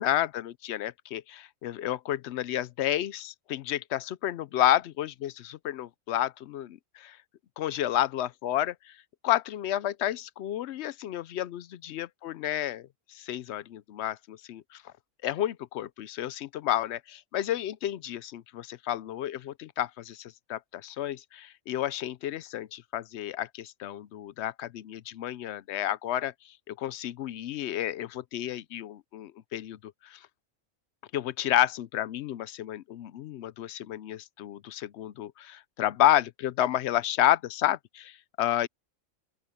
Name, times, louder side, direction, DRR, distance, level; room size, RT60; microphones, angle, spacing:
voice 1, 0.0-7.2 7.6-8.9 9.2-14.8 15.2-26.3 26.7-30.2 31.1-38.7, left 12 dB, 65° left, 0.8 m, -30 dB
open air
omnidirectional pair, 1.3 m